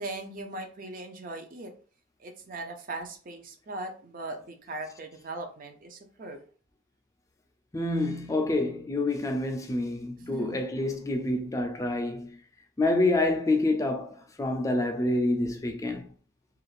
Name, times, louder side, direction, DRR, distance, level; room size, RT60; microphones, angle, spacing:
voice 1, 0.0-1.7 2.2-6.4 10.2-10.7, right 2 dB, 45° right, 0.5 m, -39 dB
voice 2, 7.7-12.4 12.8-16.1, left 2 dB, 15° left, 0.3 m, -27 dB
2.5 x 2.4 x 3.1 m
head